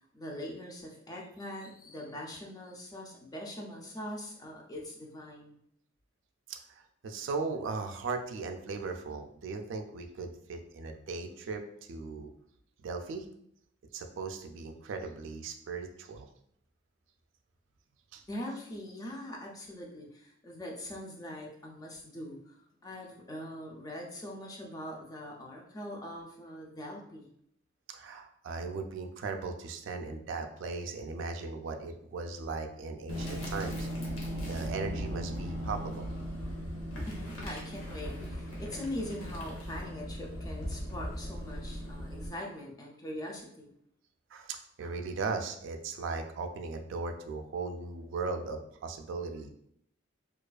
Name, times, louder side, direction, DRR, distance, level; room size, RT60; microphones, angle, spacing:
voice 1, 0.1-5.6 18.3-22.5 22.8-27.3 37.1-43.7, left 1 dB, 20° left, -1 dB, 0.3 m, -42 dB
voice 2, 6.5-11.6 11.9-12.3 12.8-13.3 13.9-16.3 18.1-18.2 27.9-33.9 34.5-36.1 44.3-49.5, right 4 dB, 70° right, 5 dB, 0.3 m, -38 dB
sound 1, 33.1-42.3, equal, 90° left, 0.7 m, -38 dB
2.3 x 2.3 x 2.3 m, 0.70 s
head